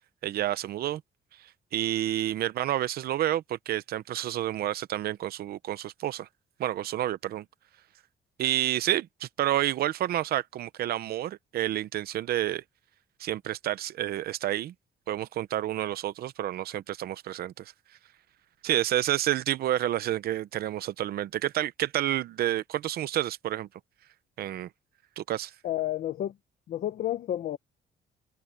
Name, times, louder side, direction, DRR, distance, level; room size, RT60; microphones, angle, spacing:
voice 1, 0.2-1.0 1.7-6.3 6.6-7.4 8.4-12.6 13.2-14.7 15.1-17.7 18.6-23.7 24.4-24.7 25.2-25.5, right 13 dB, 65° right, 0.7 m, -29 dB
voice 2, 25.6-26.3 26.7-27.6, left 12 dB, 55° left, 1.0 m, -30 dB
cardioid pair, 180°, 17 cm